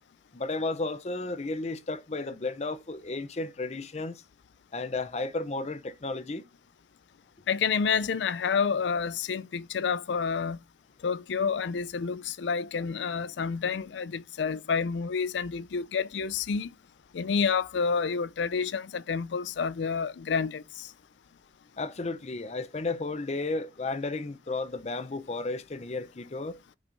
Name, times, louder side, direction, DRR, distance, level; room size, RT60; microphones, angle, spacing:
voice 1, 0.3-4.2 4.7-6.4 21.8-26.6, left 3 dB, 35° left, 0.6 m, -33 dB
voice 2, 7.5-10.6 11.0-16.7 17.1-20.9, left 5 dB, 85° left, 0.4 m, -29 dB
12.5 x 5.3 x 2.6 m
head